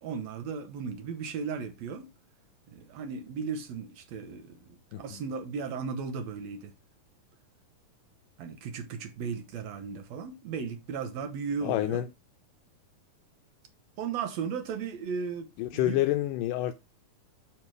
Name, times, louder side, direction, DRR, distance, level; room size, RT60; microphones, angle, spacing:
voice 1, 0.0-2.1 2.7-6.7 8.4-12.0 14.0-15.5 15.7-16.0, right 6 dB, 70° right, 1.7 m, -36 dB
voice 2, 11.6-12.1 15.6-16.7, left 14 dB, 80° left, 2.0 m, -28 dB
7.4 x 3.3 x 6.0 m
omnidirectional pair, 4.0 m